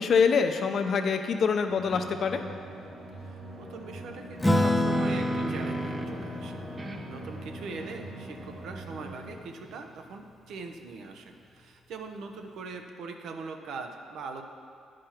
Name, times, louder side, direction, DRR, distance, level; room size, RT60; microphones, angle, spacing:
voice 1, 0.0-2.4, left 6 dB, 55° left, 7 dB, 0.6 m, -25 dB
sound 1, 1.7-9.4, right 1 dB, 50° right, 2.5 m, -43 dB
sound 2, 1.9-2.1 4.5-6.3 6.8-10.1, right 3 dB, 30° right, 0.7 m, -41 dB
voice 2, 3.2-6.6 7.1-14.4, right 4 dB, 75° right, 4 dB, 0.8 m, -41 dB
Acoustic guitar / Strum, 4.4-9.3, left 1 dB, 10° left, 0.7 m, -30 dB
10.0 x 5.2 x 5.8 m, 2.3 s
cardioid pair, 90°, 0 cm